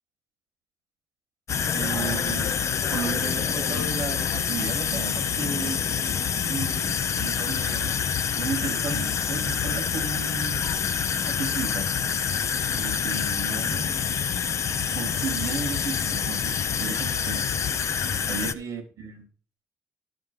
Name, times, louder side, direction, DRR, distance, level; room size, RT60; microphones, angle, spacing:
sound 1, 1.5-18.5, left 7 dB, 60° left, 0.7 m, -27 dB
voice 1, 1.7-2.5 2.9-5.8 6.5-10.7 11.3-11.9 12.7-14.2 14.9-17.5 18.2-19.3, right 5 dB, 85° right, 6 dB, 2.6 m, -34 dB
12.0 x 5.1 x 5.6 m, 0.41 s
cardioid pair, 75°, 6 cm